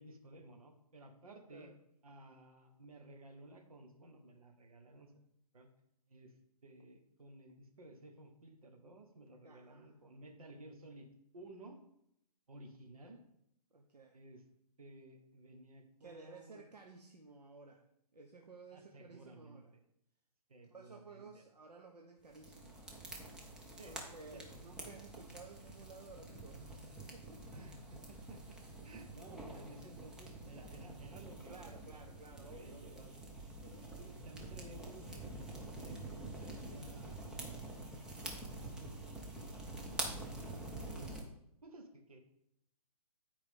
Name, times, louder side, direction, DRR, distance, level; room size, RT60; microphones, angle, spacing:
voice 1, 0.0-1.7 2.0-5.1 5.5-5.7 6.1-6.3 6.6-11.1 11.3-11.8 12.5-13.2 14.1-14.4 14.8-16.6 18.7-19.6 20.5-21.4 23.8-24.0 24.3-24.6 27.4-32.0 32.3-33.1 33.6-36.0 36.3-37.2 37.9-38.6 41.6-42.2, right 1 dB, 60° right, 4 dB, 1.5 m, -56 dB
voice 2, 9.4-10.0 13.7-14.2 16.0-17.8 18.1-19.7 20.7-22.8 23.8-27.3 29.3-29.6 31.5-33.2, right 3 dB, 75° right, 2 dB, 0.9 m, -55 dB
sound 1, 22.3-41.2, right 2 dB, 5° right, 0.7 m, -47 dB
9.6 x 4.7 x 3.7 m, 0.76 s
figure-of-eight pair, 135°, 21 cm